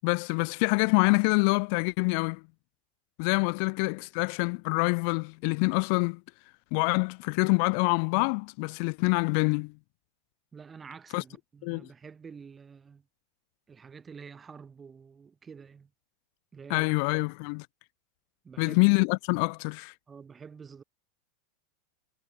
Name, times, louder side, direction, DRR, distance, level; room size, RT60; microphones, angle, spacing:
voice 1, 0.0-2.4 3.2-6.2 6.7-9.7 11.1-11.2 11.6-11.8 16.7-17.7 18.6-19.9, left 40 dB or more, 55° left, 0.5 m, -26 dB
voice 2, 10.5-13.1 13.7-15.9 16.5-17.0 18.4-18.8 20.1-20.8, right 6 dB, 20° right, 3.8 m, -48 dB
hypercardioid pair, 100°, 0 cm